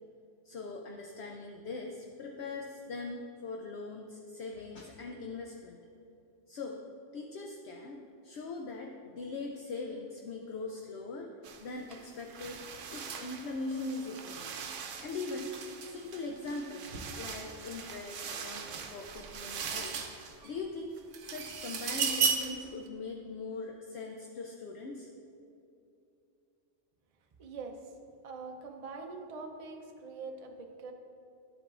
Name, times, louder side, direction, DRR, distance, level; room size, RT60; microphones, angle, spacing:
voice 1, 0.4-5.8 6.5-6.8 7.1-11.3 11.6-12.6 12.9-14.5 15.0-15.6 15.8-19.9 20.4-20.9 21.2-25.1, left 3 dB, 65° left, 1 dB, 0.8 m, -41 dB
sound 1, 11.4-11.6 11.9-20.5 21.0-22.6, right 6 dB, 80° right, 1.0 m, -37 dB
voice 2, 27.4-28.0 28.2-30.9, right 4 dB, 45° right, 3 dB, 0.5 m, -43 dB
10.5 x 7.7 x 2.4 m, 2.7 s
omnidirectional pair, 1.3 m